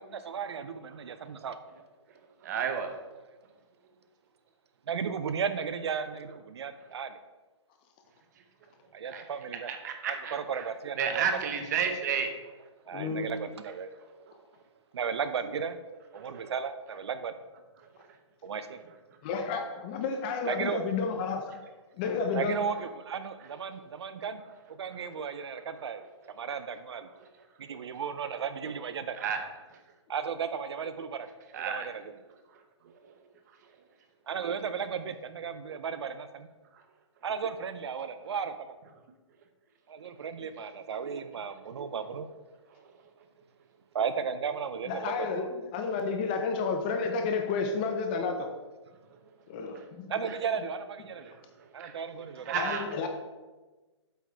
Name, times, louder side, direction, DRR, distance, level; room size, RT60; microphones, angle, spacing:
voice 1, 0.0-1.6 4.9-7.2 8.9-9.7 10.1-11.3 12.9-13.9 14.9-15.8 16.1-17.3 18.4-18.8 20.4-20.8 22.3-24.4 24.7-26.0 26.3-27.1 27.6-29.2 30.1-31.3 31.6-32.1 34.3-36.5 37.2-38.7 39.9-42.3 43.9-45.5 50.1-51.3 51.7-52.5, right 6 dB, 60° right, 11 dB, 0.5 m, -35 dB
voice 2, 2.4-2.9 9.1-9.2 9.7-10.4 11.0-12.3 16.2-16.5 29.2-29.4 31.5-31.9 51.2-51.3 51.8-51.9 52.5-52.8, right 7 dB, 35° right, 6 dB, 0.9 m, -31 dB
voice 3, 12.9-13.3 19.2-21.6 22.0-22.6 44.9-48.5 49.5-50.1 52.5-53.1, left 4 dB, 20° left, 5 dB, 0.4 m, -31 dB
8.0 x 4.6 x 4.6 m, 1.2 s
hypercardioid pair, 165°, 16 cm